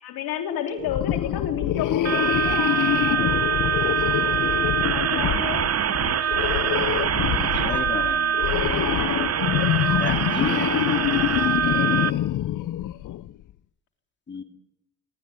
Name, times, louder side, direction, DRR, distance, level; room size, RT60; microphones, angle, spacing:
voice 1, 0.0-3.2 4.9-5.7 7.6-8.1 8.9-9.4, left 8 dB, 75° left, 5 dB, 3.7 m, -31 dB
sound 1, 0.8-13.3, left 13 dB, 55° left, 0.8 m, -26 dB
sound 2, 2.0-12.1, right 8 dB, 45° right, 1.0 m, -24 dB
voice 2, 5.9-6.6 7.5-8.4 9.9-10.8 14.3-14.4, left 4 dB, 30° left, 7 dB, 2.6 m, -33 dB
26.0 x 13.5 x 9.7 m, 0.80 s
supercardioid pair, 75°, 36 cm